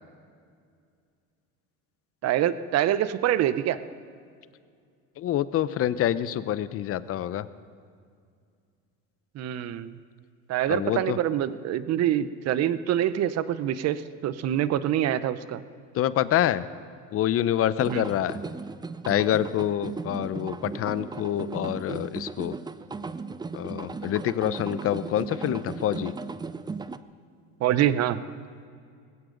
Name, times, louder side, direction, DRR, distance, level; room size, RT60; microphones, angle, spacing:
voice 1, 2.2-3.8 9.3-9.9 10.5-15.6 17.9-18.0 27.6-28.2, right 11 dB, 50° right, 14 dB, 0.8 m, -25 dB
voice 2, 5.2-7.5 10.7-11.2 15.9-16.6 17.1-18.4 19.0-22.5 23.5-26.1, left 11 dB, 45° left, 16 dB, 0.7 m, -26 dB
sound 1, 17.8-27.0, right 4 dB, 15° right, 0.5 m, -36 dB
20.0 x 16.5 x 3.9 m, 2.3 s
supercardioid pair, 105°, 32 cm